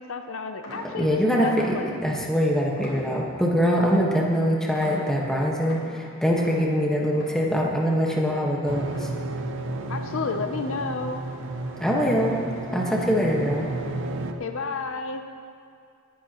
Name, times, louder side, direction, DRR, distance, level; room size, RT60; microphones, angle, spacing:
voice 1, 0.0-1.9 9.9-11.2 14.4-15.2, left 4 dB, 65° left, 6 dB, 0.6 m, -31 dB
sound 1, 0.6-2.2 2.8-3.5 3.9-9.5 9.8-11.8 12.1-12.5 13.0-13.5, left 1 dB, 80° left, 3.6 m, -43 dB
voice 2, 0.9-1.8 2.0-9.1 11.8-12.4 12.7-13.7, equal, 5° left, -3 dB, 1.4 m, -23 dB
sound 2, 8.7-14.3, right 2 dB, 60° right, 0.8 m, -32 dB
20.5 x 10.5 x 3.0 m, 2.3 s
head